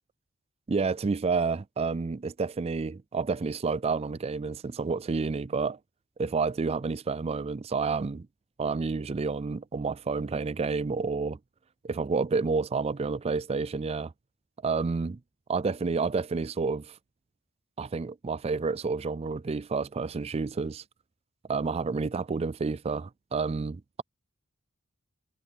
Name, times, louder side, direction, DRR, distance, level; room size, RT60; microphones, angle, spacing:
voice 1, 0.7-5.8 6.2-8.3 8.6-11.4 11.8-14.1 14.6-15.2 15.5-17.0 17.8-20.8 21.5-24.0, right 4 dB, 30° right, 0.4 m, -29 dB
head